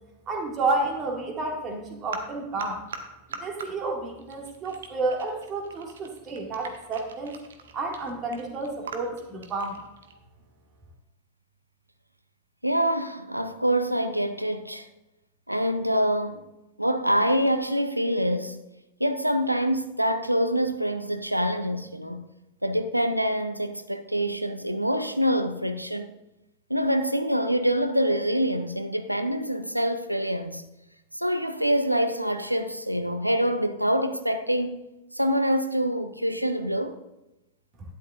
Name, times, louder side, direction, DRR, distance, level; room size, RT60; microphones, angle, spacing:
voice 1, 0.3-2.8 3.3-7.4 7.7-9.8, right 3 dB, 30° right, 2.1 m, -30 dB
sound 1, 1.7-3.0 3.3-3.7 4.1-10.1, right 6 dB, 65° right, 1.1 m, -41 dB
voice 2, 12.6-14.9 15.5-16.5 16.8-18.6 19.0-22.3 22.6-26.1 26.7-30.6 31.1-34.9 35.1-37.0, equal, 90° right, 0.6 m, -25 dB
12.0 x 10.0 x 2.5 m
figure-of-eight pair, 90°, 0 cm